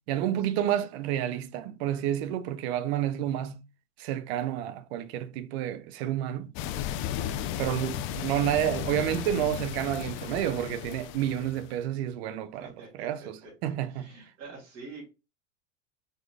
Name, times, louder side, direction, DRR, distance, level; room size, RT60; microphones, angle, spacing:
voice 1, 0.1-3.6 4.0-6.5 7.6-12.7 13.0-13.4 13.6-14.2, right 11 dB, 60° right, 0.7 m, -30 dB
sound 1, 6.6-11.8, left 10 dB, 35° left, 0.4 m, -35 dB
voice 2, 7.3-7.6 12.5-13.5 13.9-15.1, right 3 dB, 40° right, 2.8 m, -47 dB
4.7 x 4.3 x 2.3 m
supercardioid pair, 130°, 36 cm